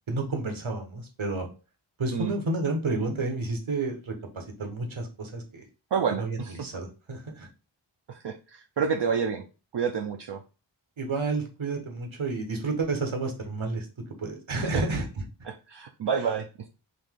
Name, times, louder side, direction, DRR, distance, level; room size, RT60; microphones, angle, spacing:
voice 1, 0.1-1.5 2.0-5.6 6.2-7.5 11.0-13.9 14.2-15.1, right 3 dB, 80° right, 3 dB, 1.2 m, -30 dB
voice 2, 5.9-6.7 8.1-9.4 9.7-10.4 14.6-14.8 15.5-16.7, right 6 dB, 60° right, 4 dB, 0.5 m, -29 dB
4.0 x 2.8 x 3.6 m, 0.32 s
wide cardioid pair, 55°, 47 cm